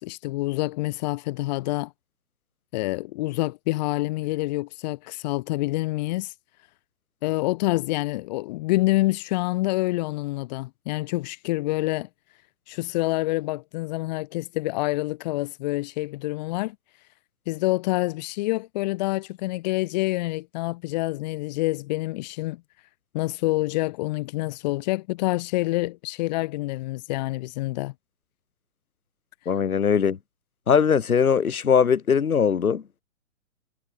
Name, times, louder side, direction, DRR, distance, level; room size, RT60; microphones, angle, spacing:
voice 1, 0.0-1.9 2.7-6.3 7.2-12.1 12.7-16.8 17.5-22.6 23.1-27.9, left 20 dB, 30° left, 1.9 m, -27 dB
voice 2, 29.5-30.2 30.7-33.0, left 7 dB, 80° left, 3.0 m, -21 dB
hypercardioid pair, 150°, 43 cm